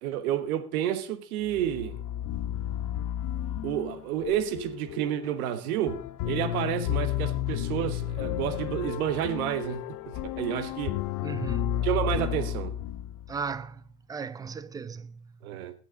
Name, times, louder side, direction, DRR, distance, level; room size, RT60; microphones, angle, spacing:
voice 1, 0.0-2.0 3.6-6.0 6.2-11.0 11.8-12.7 15.4-15.7, right 11 dB, 70° right, 1.5 m, -30 dB
sound 1, 1.5-13.5, left 12 dB, 45° left, 0.9 m, -32 dB
voice 2, 11.2-11.9 13.3-13.8 14.1-15.3, right 5 dB, 10° right, 0.4 m, -36 dB
18.5 x 6.2 x 3.8 m
hypercardioid pair, 105°, 44 cm